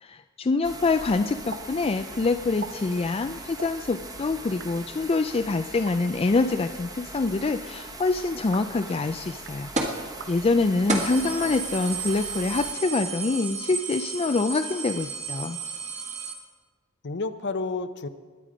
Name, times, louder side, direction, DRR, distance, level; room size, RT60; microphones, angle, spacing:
voice 1, 0.0-9.7 10.0-15.6, left 3 dB, 25° left, 7 dB, 0.4 m, -25 dB
sound 1, 0.6-12.7, right 2 dB, 20° right, 1.3 m, -41 dB
sound 2, 1.5-1.6 1.9-2.0 2.4-2.7 3.5-3.7 4.4-4.7 5.7-5.9 7.0-7.3 8.3-8.8 9.3-9.6 10.1-10.3 11.0-11.2 11.9-12.6, right 5 dB, 60° right, 1.1 m, -43 dB
sound 3, 9.8-10.0 10.5-10.6 10.9-16.3, right 4 dB, 35° right, 1.8 m, -32 dB
voice 2, 11.2-11.7 17.0-18.1, left 3 dB, 55° left, 11 dB, 0.8 m, -31 dB
22.0 x 9.2 x 5.1 m, 1.5 s
head